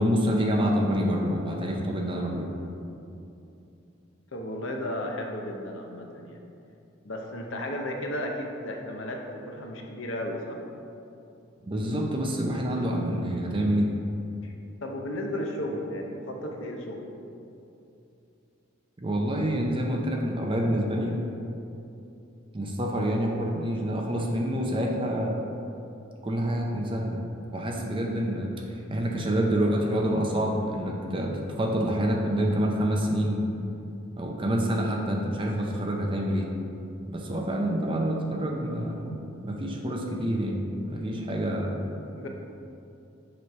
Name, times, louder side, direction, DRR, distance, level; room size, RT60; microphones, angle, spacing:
voice 1, 0.0-2.5 11.7-13.9 19.0-21.2 22.5-25.3 26.2-27.2 27.5-33.4 34.2-36.5 37.1-39.1 39.4-41.8, equal, 25° right, 0 dB, 0.5 m, -27 dB
voice 2, 4.3-6.4 7.0-10.6 14.4-14.5 14.8-17.1 42.2-42.3, left 1 dB, 65° left, 1 dB, 0.8 m, -34 dB
6.9 x 3.2 x 5.4 m, 2.7 s
head